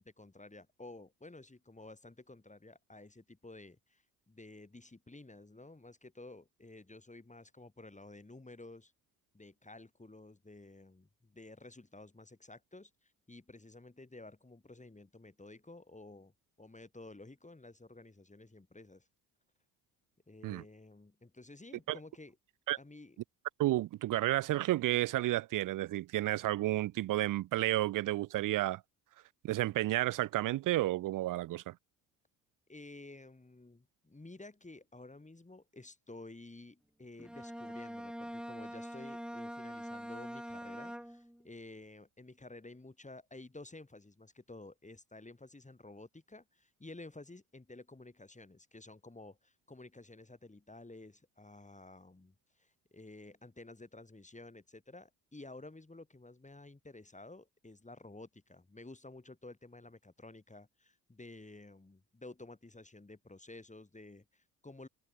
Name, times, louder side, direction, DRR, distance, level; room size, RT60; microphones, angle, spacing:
voice 1, 0.0-8.9 9.3-16.3 16.6-19.1 20.3-22.4 22.8-23.2 32.7-64.9, left 2 dB, 15° left, 5.5 m, -52 dB
voice 2, 23.6-28.8 29.4-31.7, right 15 dB, 50° right, 0.5 m, -31 dB
Bowed string instrument, 37.2-41.5, equal, ahead, 3.0 m, -44 dB
hypercardioid pair, 55°, 43 cm